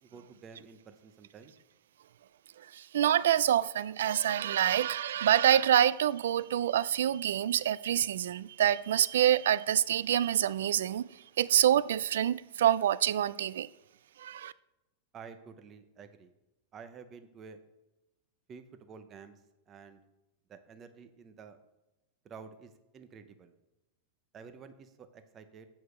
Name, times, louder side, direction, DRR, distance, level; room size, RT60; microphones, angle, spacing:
voice 1, 0.0-1.5 15.1-16.3 16.7-17.6 18.5-19.4 19.7-20.0 20.5-21.6 22.2-23.5 24.3-25.7, right 6 dB, 15° right, 0.6 m, -50 dB
voice 2, 2.7-11.1 11.4-13.7 14.2-14.5, right 10 dB, 75° right, 0.3 m, -26 dB
9.0 x 4.8 x 6.5 m
supercardioid pair, 180°, 0 cm